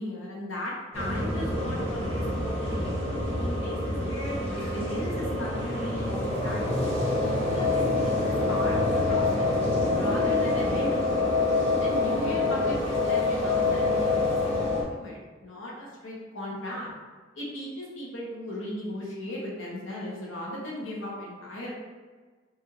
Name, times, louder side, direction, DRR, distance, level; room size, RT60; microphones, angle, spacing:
voice 1, 0.0-3.0 3.4-6.9 7.2-9.5 9.9-11.4 11.8-16.9 17.3-21.7, left 1 dB, 85° left, -4 dB, 0.9 m, -37 dB
sound 1, 0.9-14.8, left 2 dB, 35° left, 0.9 m, -26 dB
3.3 x 2.3 x 3.0 m, 1.4 s
head